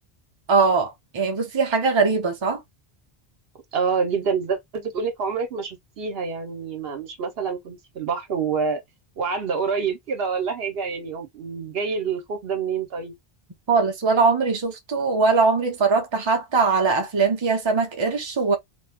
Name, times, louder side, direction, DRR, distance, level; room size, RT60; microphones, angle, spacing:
voice 1, 0.5-2.6 13.7-18.6, right 4 dB, 30° right, 0.6 m, -21 dB
voice 2, 3.7-8.8 9.2-13.1, right 5 dB, 70° right, 1.0 m, -27 dB
2.6 x 2.2 x 3.3 m
omnidirectional pair, 1.0 m